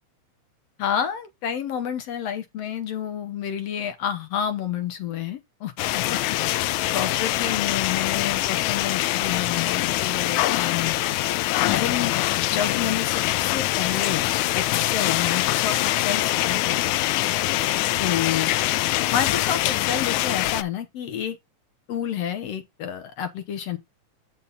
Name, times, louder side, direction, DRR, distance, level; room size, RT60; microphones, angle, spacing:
voice 1, 0.8-6.4 6.9-10.9 11.7-12.1 12.5-14.3 14.5-16.8 18.0-18.5 19.1-21.4 21.9-23.8, left 9 dB, 70° left, 1.8 m, -29 dB
sound 1, 5.8-20.6, left 16 dB, 90° left, 2.0 m, -24 dB
8.4 x 5.7 x 4.0 m
omnidirectional pair, 3.4 m